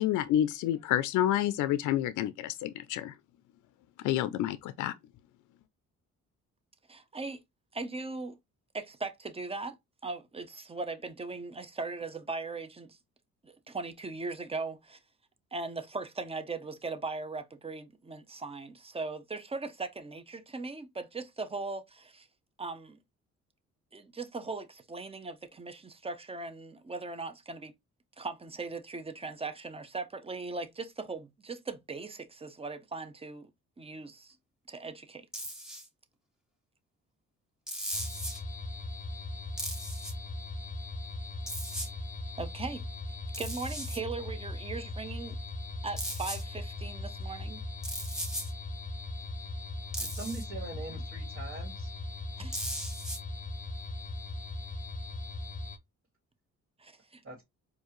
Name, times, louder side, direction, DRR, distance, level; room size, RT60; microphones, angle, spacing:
voice 1, 0.0-3.1 4.0-4.9, left 12 dB, 85° left, 0.5 m, -29 dB
voice 2, 6.9-7.4 7.7-8.4 8.7-9.8 10.0-13.0 13.4-15.0 15.5-22.3 22.6-23.0 23.9-27.7 28.2-33.5 33.8-34.4 34.7-35.4 41.7-41.9 42.4-42.8 43.4-45.3 45.8-47.6 52.4-52.6 56.8-57.2, right 3 dB, 20° right, 0.7 m, -39 dB
sound 1, 35.3-35.9 37.7-38.4 39.6-40.1 41.5-41.9 43.3-44.0 46.0-46.4 47.8-48.5 49.9-50.4 52.5-53.2, equal, ahead, 2.1 m, -37 dB
sound 2, 37.9-55.8, left 2 dB, 25° left, 0.7 m, -39 dB
voice 3, 50.0-51.9 57.2-57.4, right 2 dB, 45° right, 2.3 m, -42 dB
4.4 x 2.7 x 3.0 m
cardioid pair, 90°, 30 cm